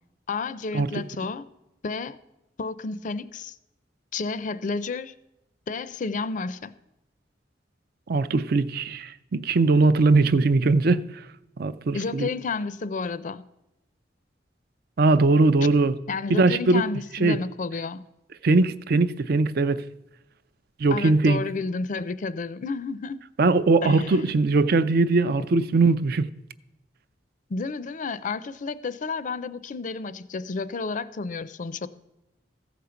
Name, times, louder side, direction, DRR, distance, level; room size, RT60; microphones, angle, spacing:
voice 1, 0.3-1.5 1.8-2.2 2.6-3.6 4.1-5.1 5.7-6.7 11.9-13.4 16.1-18.0 20.9-23.2 23.8-24.3 27.5-31.9, left 4 dB, 45° left, 0.4 m, -31 dB
voice 2, 8.1-11.0 11.6-12.3 15.0-15.9 16.3-16.8 17.2-17.4 18.4-19.8 20.8-21.4 23.4-26.3, right 3 dB, 60° right, 0.5 m, -20 dB
14.5 x 5.1 x 6.9 m
head